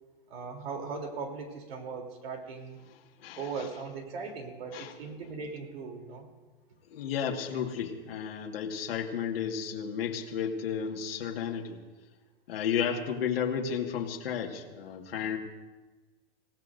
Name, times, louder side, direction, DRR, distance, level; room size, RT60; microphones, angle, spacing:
voice 1, 0.3-2.8 3.4-6.3, right 5 dB, 85° right, 3 dB, 3.5 m, -39 dB
voice 2, 3.2-3.7 4.7-4.9 6.9-11.8 12.5-15.4, left 7 dB, 80° left, 0 dB, 1.9 m, -33 dB
27.0 x 17.0 x 2.7 m, 1.2 s
supercardioid pair, 175°, 29 cm